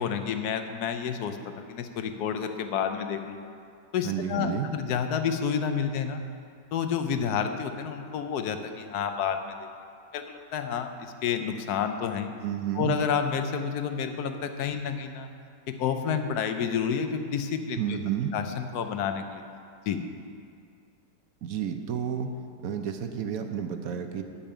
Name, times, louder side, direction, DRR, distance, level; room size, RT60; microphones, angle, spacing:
voice 1, 0.0-3.5 3.9-6.2 6.7-9.6 10.1-12.3 12.8-15.3 15.7-18.0 18.3-19.4 19.9-20.0, left 7 dB, 65° left, 7 dB, 1.2 m, -30 dB
voice 2, 4.0-4.7 12.4-13.0 17.8-18.3 21.4-22.3 22.6-24.2, right 8 dB, 60° right, 6 dB, 1.1 m, -31 dB
12.0 x 5.3 x 8.7 m, 2.4 s
omnidirectional pair, 1.9 m